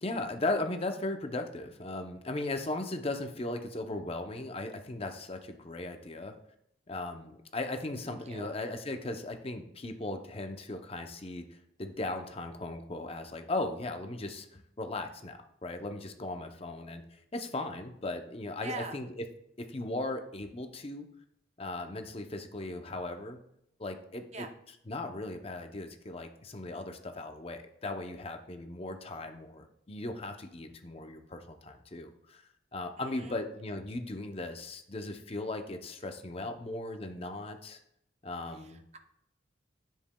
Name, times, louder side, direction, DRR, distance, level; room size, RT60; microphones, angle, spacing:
voice 1, 0.0-6.3 6.9-19.2 19.6-21.1 21.6-23.4 23.8-24.5 24.9-32.4 32.7-37.8 38.2-38.8, left 2 dB, 30° left, 6 dB, 0.6 m, -37 dB
voice 2, 8.1-8.5 18.6-19.0 24.3-24.5 33.0-33.4 38.5-39.0, right 3 dB, 35° right, 7 dB, 0.6 m, -43 dB
10.0 x 7.3 x 2.2 m, 0.76 s
head